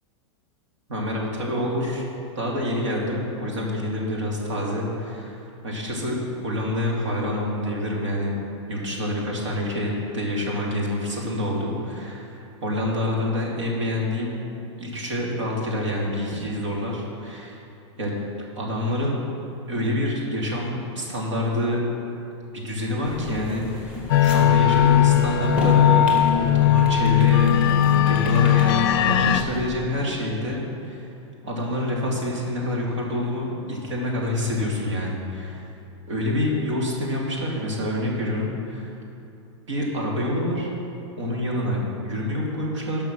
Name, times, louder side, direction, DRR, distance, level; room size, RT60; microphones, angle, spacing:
voice 1, 0.9-2.0 2.3-6.2 6.4-8.4 8.7-14.4 14.8-17.6 18.0-18.1 18.6-19.2 19.7-21.8 22.5-23.9 24.2-31.0 31.4-35.6 36.1-38.9 39.7-40.7 41.2-43.1, left 1 dB, 85° right, -3 dB, 2.8 m, -27 dB
sound 1, 23.0-29.8, left 1 dB, 5° right, 1.4 m, -34 dB
sound 2, 24.1-29.4, left 10 dB, 50° left, 0.5 m, -18 dB
12.5 x 5.6 x 6.6 m, 2.7 s
supercardioid pair, 170°, 15 cm